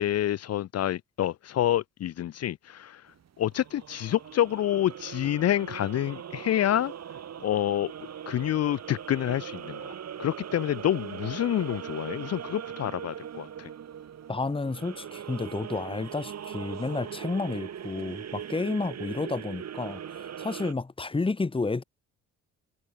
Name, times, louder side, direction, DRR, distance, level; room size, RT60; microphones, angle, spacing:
voice 1, 0.0-3.0 3.4-6.9 7.4-7.9 8.3-13.7, left 12 dB, 55° left, 0.7 m, -28 dB
sound 1, 3.1-20.7, right 9 dB, 60° right, 7.8 m, -40 dB
voice 2, 14.3-21.8, left 3 dB, 15° left, 1.6 m, -31 dB
cardioid pair, 90°, 30 cm